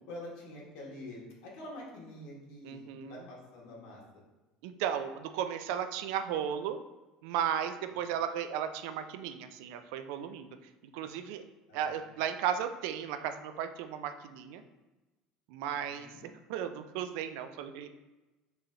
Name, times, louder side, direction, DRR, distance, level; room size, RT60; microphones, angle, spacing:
voice 1, 0.1-4.0 11.7-12.0 15.7-16.3, left 1 dB, 75° left, -3 dB, 1.3 m, -46 dB
voice 2, 2.6-3.3 4.6-6.8 7.2-10.5 10.9-11.4 11.7-14.6 15.5-16.1 16.5-17.9, right 9 dB, 85° right, 9 dB, 0.4 m, -35 dB
4.6 x 3.1 x 2.6 m, 1.1 s
cardioid pair, 140°, 2 cm